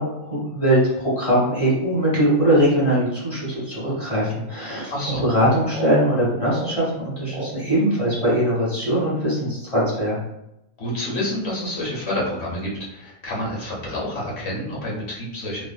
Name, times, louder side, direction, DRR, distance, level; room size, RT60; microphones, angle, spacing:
voice 1, 0.0-4.9 5.2-6.9 7.2-10.2, right 1 dB, 25° left, -7 dB, 1.4 m, -21 dB
voice 2, 4.9-5.2 10.8-15.6, left 1 dB, 50° left, -5 dB, 1.3 m, -28 dB
sound 1, 5.0-5.3 5.6-6.0 6.4-6.8 7.3-7.5 8.2-8.5, right 1 dB, 55° right, 0.8 m, -33 dB
3.2 x 2.5 x 2.3 m, 0.84 s
omnidirectional pair, 1.5 m